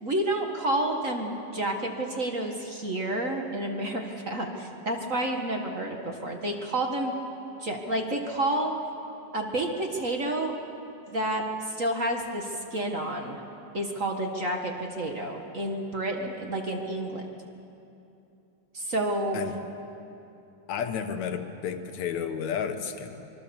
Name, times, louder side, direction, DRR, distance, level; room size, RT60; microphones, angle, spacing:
voice 1, 0.0-7.1 7.6-8.7 9.3-10.5 11.1-13.4 13.7-17.2 18.7-19.4, right 1 dB, 45° right, 2 dB, 1.1 m, -30 dB
voice 2, 20.7-23.3, left 7 dB, 65° left, 7 dB, 2.2 m, -32 dB
25.5 x 23.5 x 7.1 m, 2.8 s
omnidirectional pair, 4.0 m